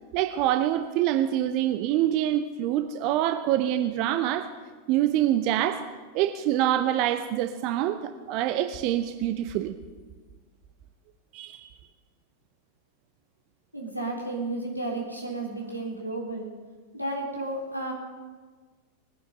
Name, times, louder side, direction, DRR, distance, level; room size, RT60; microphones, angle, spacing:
voice 1, 0.1-4.5 4.9-5.8 6.1-9.7 11.3-11.7, right 12 dB, 40° right, 9 dB, 0.7 m, -25 dB
voice 2, 13.7-16.5 16.9-17.9, right 2 dB, 90° right, -2 dB, 3.7 m, -32 dB
20.0 x 9.8 x 6.8 m, 1.4 s
figure-of-eight pair, 90°, 0 cm